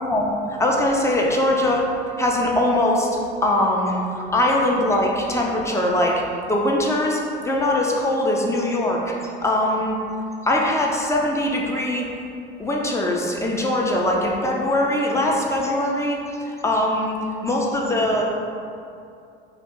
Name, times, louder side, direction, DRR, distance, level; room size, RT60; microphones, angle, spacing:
voice 1, 0.0-1.9 2.2-3.1 3.4-6.1 6.5-10.0 10.4-12.0 12.6-17.2 17.4-18.3, left 1 dB, 10° left, -2 dB, 0.3 m, -21 dB
2.7 x 2.3 x 3.6 m, 2.5 s
hypercardioid pair, 75°, 31 cm